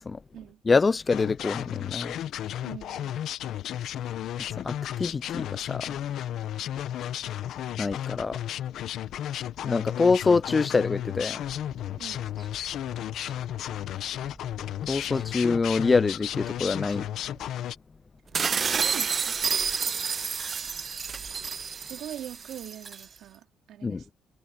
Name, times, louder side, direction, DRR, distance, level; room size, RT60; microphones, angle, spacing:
voice 1, 0.7-2.2 4.4-6.0 7.8-8.4 9.6-11.4 14.9-17.1 23.8-24.0, left 4 dB, 30° left, 0.3 m, -25 dB
sound 1, 1.1-17.8, left 11 dB, 80° left, 1.0 m, -33 dB
voice 2, 2.6-3.2 12.0-12.3 18.7-19.4 21.8-24.1, right 11 dB, 80° right, 3.3 m, -42 dB
sound 2, 11.4-17.5, right 2 dB, 15° right, 7.7 m, -52 dB
sound 3, 18.3-23.0, right 6 dB, 45° right, 0.4 m, -29 dB
cardioid pair, 90°, 0 cm